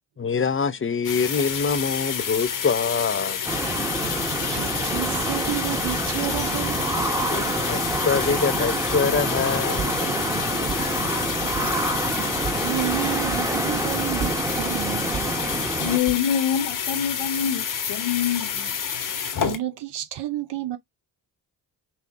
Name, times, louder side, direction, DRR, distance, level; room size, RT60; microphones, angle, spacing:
voice 1, 0.2-3.4 7.3-10.0, left 5 dB, 30° left, 0.7 m, -24 dB
sound 1, 1.0-19.6, left 7 dB, 45° left, 1.1 m, -29 dB
sound 2, 3.4-16.0, right 2 dB, 5° right, 1.2 m, -27 dB
voice 2, 4.4-6.9 11.1-11.3 11.6-11.9 12.6-15.2 19.4-20.8, right 14 dB, 65° right, 0.8 m, -31 dB
Walk footsteps, 7.9-8.4 8.9-9.4 9.8-10.2 10.6-11.2 11.5-11.9 12.4-12.8 13.3-13.8 14.2-15.7 16.0-16.4, right 5 dB, 30° right, 1.2 m, -36 dB
voice 3, 15.8-18.7, left 9 dB, 85° left, 0.9 m, -25 dB
6.0 x 2.2 x 3.5 m
cardioid pair, 65°, 44 cm